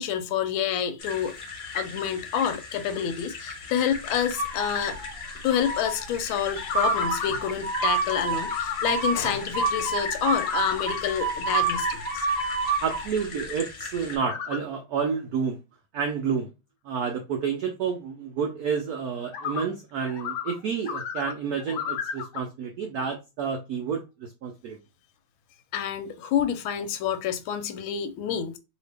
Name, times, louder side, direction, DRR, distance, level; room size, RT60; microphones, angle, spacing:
voice 1, 0.0-5.0 5.2-12.3 25.7-28.6, left 8 dB, 90° left, 1.4 m, -28 dB
sound 1, 1.0-14.2, left 4 dB, 45° left, 0.9 m, -38 dB
sound 2, 4.3-5.1 5.5-6.0 6.7-13.0, right 4 dB, 40° right, 0.9 m, -28 dB
sound 3, 6.5-7.5 8.3-8.9 10.1-10.9 14.1-14.6 19.2-19.6 20.1-20.5 20.8-22.4, left 7 dB, 75° left, 1.2 m, -32 dB
voice 2, 12.8-15.6 15.9-16.5 16.8-24.8, right 6 dB, 85° right, 0.8 m, -30 dB
2.8 x 2.8 x 3.3 m
omnidirectional pair, 2.2 m